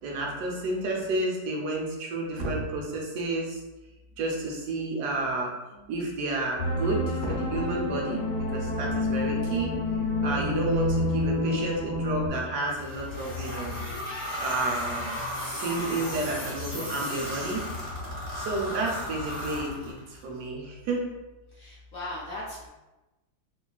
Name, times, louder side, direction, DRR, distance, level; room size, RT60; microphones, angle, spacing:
voice 1, 0.0-3.6 4.2-8.2 8.5-9.7 10.2-13.8 14.4-15.1 15.6-17.6 18.3-21.0, right 2 dB, 75° right, -1 dB, 1.1 m, -31 dB
sound 1, 6.6-12.3, left 2 dB, 90° left, 1.3 m, -28 dB
sound 2, 12.7-20.2, left 1 dB, 30° right, 1.2 m, -35 dB
voice 2, 21.5-22.7, left 1 dB, 65° left, -6 dB, 0.9 m, -38 dB
3.1 x 2.2 x 2.3 m, 1.0 s
omnidirectional pair, 1.8 m